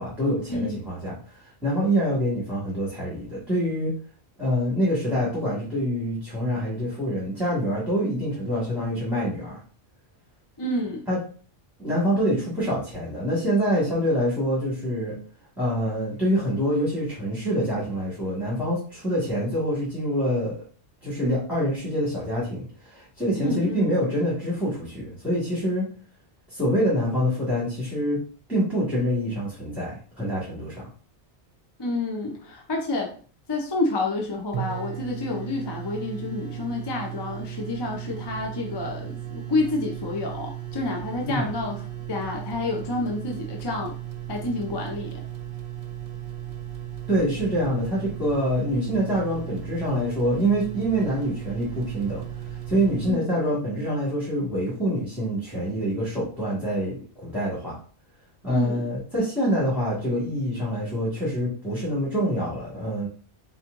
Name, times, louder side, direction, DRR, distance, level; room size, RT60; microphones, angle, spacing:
voice 1, 0.0-3.9 4.4-9.5 11.1-11.2 11.8-15.1 15.6-20.6 21.0-25.8 26.5-28.2 28.5-29.9 30.2-30.9 41.2-41.5 47.1-57.8 58.4-63.1, equal, ahead, -8 dB, 1.7 m, -26 dB
voice 2, 10.6-11.0 23.4-23.9 31.8-33.2 33.5-41.8 42.1-43.9 44.3-45.2 53.0-53.3 58.5-58.9, left 2 dB, 25° left, 0 dB, 0.7 m, -29 dB
sound 1, 34.2-34.3 34.5-53.1, right 12 dB, 55° right, 0.9 m, -36 dB
4.2 x 4.2 x 2.6 m, 0.41 s
omnidirectional pair, 1.2 m